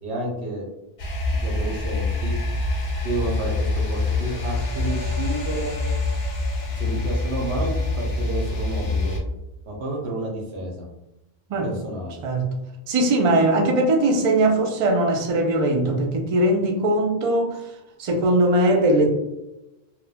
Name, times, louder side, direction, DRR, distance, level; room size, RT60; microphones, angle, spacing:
voice 1, 0.0-0.7 1.3-2.3 3.0-5.7 6.7-9.2 9.7-10.9 11.6-12.2, right 1 dB, 90° right, -1 dB, 1.0 m, -30 dB
sound 1, 1.0-9.2, left 2 dB, 45° left, 0.5 m, -25 dB
voice 2, 12.9-17.6 18.0-19.1, right 1 dB, 55° right, 3 dB, 0.4 m, -20 dB
3.1 x 2.1 x 2.3 m, 0.93 s
omnidirectional pair, 1.0 m